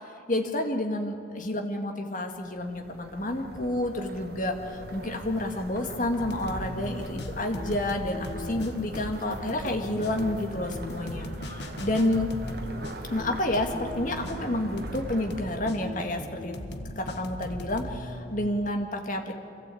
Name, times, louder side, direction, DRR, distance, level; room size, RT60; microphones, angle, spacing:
voice 1, 0.3-12.3 13.1-16.5 17.0-19.3, left 1 dB, 45° left, 3 dB, 1.9 m, -29 dB
sound 1, 2.3-15.8, right 1 dB, 55° right, 1.8 m, -42 dB
sound 2, 6.2-18.7, left 1 dB, 65° left, 1.5 m, -39 dB
25.0 x 15.5 x 8.5 m, 2.7 s
head